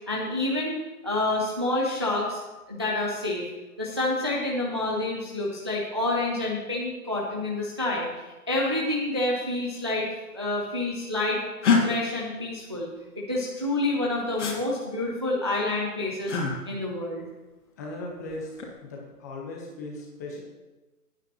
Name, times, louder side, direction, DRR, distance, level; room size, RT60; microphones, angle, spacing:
voice 1, 0.1-0.8 1.0-2.4 2.7-3.4 3.8-10.0 10.3-11.4 11.8-12.9 13.3-16.4 16.7-17.3, left 2 dB, 20° right, -3 dB, 0.5 m, -28 dB
sound 1, 11.6-11.8 14.4-14.6 16.3-16.5 18.3-18.7, left 5 dB, 50° left, 2.4 m, -23 dB
voice 2, 17.8-18.5 18.8-20.4, left 2 dB, 10° left, -1 dB, 0.8 m, -37 dB
14.5 x 9.0 x 2.9 m, 1.1 s
hypercardioid pair, 155°, 47 cm